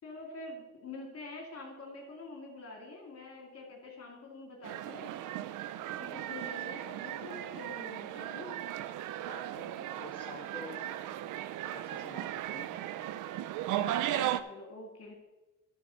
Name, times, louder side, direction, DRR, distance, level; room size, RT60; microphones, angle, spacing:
voice 1, 0.0-5.1 6.0-8.6 14.0-15.1, left 2 dB, 50° left, 0 dB, 2.8 m, -46 dB
sound 1, 4.6-14.4, right 12 dB, 85° right, 0.5 m, -36 dB
voice 2, 9.3-10.9 11.7-12.8, left 3 dB, 15° left, -3 dB, 1.9 m, -48 dB
12.0 x 4.3 x 6.5 m, 1.1 s
cardioid pair, 90°, 30 cm